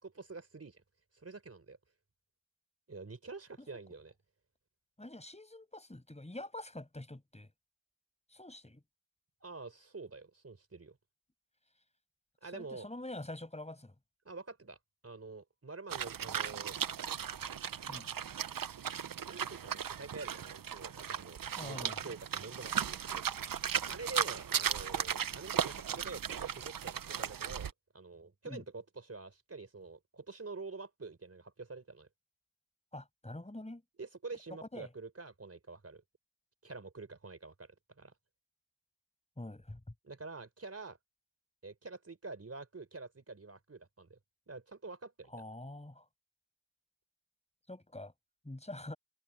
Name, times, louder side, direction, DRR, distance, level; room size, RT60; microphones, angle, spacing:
voice 1, 0.0-0.8 1.1-1.8 2.9-4.1 9.4-11.0 12.4-12.9 14.2-14.8 15.0-16.8 19.0-23.2 23.6-27.7 27.9-32.1 34.0-36.0 36.6-38.1 40.0-41.0 41.6-44.2 44.5-45.3, right 3 dB, 40° right, 4.4 m, -47 dB
voice 2, 5.0-7.5 8.3-8.8 12.5-13.9 17.9-18.1 21.6-22.0 28.5-28.6 32.9-33.8 34.7-34.9 39.4-39.8 45.3-46.0 47.7-48.1 48.4-49.0, left 1 dB, 20° left, 6.5 m, -45 dB
sound 1, 15.9-27.7, right 8 dB, 70° right, 0.8 m, -36 dB
wide cardioid pair, 70°, 36 cm